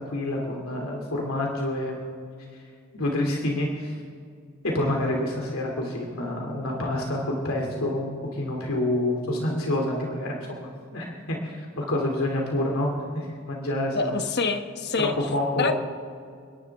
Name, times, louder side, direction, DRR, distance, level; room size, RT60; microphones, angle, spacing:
voice 1, 0.0-2.2 2.9-4.0 4.7-14.2 15.0-15.7, left 1 dB, 85° left, 0 dB, 2.6 m, -28 dB
voice 2, 13.9-15.1 15.6-15.7, left 4 dB, 50° left, 7 dB, 1.1 m, -26 dB
29.5 x 11.0 x 3.6 m, 2.2 s
head